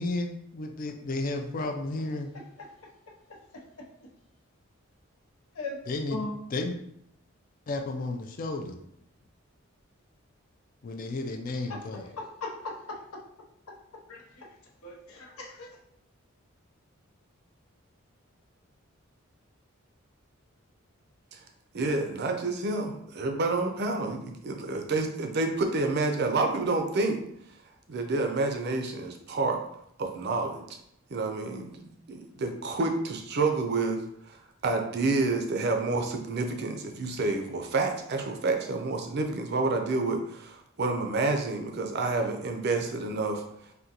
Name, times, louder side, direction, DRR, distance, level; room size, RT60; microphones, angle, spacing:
voice 1, 0.0-2.3 5.9-6.2 6.5-6.7 7.7-8.8 10.8-12.1, left 2 dB, 40° left, 5 dB, 0.3 m, -32 dB
voice 2, 12.2-12.5 12.9-13.2 14.1-14.5 14.8-15.7, left 3 dB, 90° left, -1 dB, 0.7 m, -38 dB
voice 3, 21.7-27.2 27.9-29.6 30.0-30.6 31.1-34.0 34.3-34.4 34.6-43.4, right 3 dB, 50° right, 4 dB, 0.4 m, -29 dB
3.6 x 2.2 x 2.8 m, 0.75 s
head